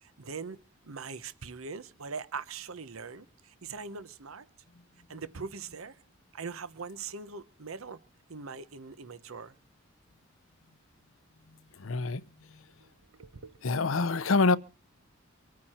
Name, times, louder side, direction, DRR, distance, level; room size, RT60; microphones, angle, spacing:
voice 1, 0.0-0.6 0.8-4.5 5.1-6.0 6.3-8.0 8.3-9.5 12.8-13.6, right 5 dB, 80° right, 0.9 m, -41 dB
voice 2, 11.8-12.2 12.5-12.6 13.6-14.6, left 3 dB, 70° left, 0.7 m, -26 dB
25.0 x 9.5 x 4.3 m
head